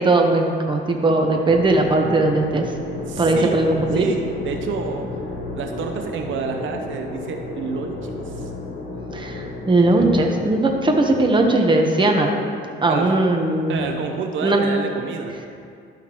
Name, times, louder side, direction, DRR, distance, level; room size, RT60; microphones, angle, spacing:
voice 1, 0.0-2.7 3.2-4.1 9.1-12.3 12.8-13.8 14.4-14.7, right 2 dB, 25° right, 2 dB, 1.0 m, -18 dB
sound 1, 1.4-11.5, left 2 dB, 80° left, 1.4 m, -33 dB
voice 2, 3.1-3.6 3.9-5.1 5.5-8.5 12.9-13.1 13.7-15.4, right 5 dB, 75° right, 4 dB, 0.7 m, -29 dB
12.0 x 5.7 x 3.0 m, 2.3 s
cardioid pair, 90°, 20 cm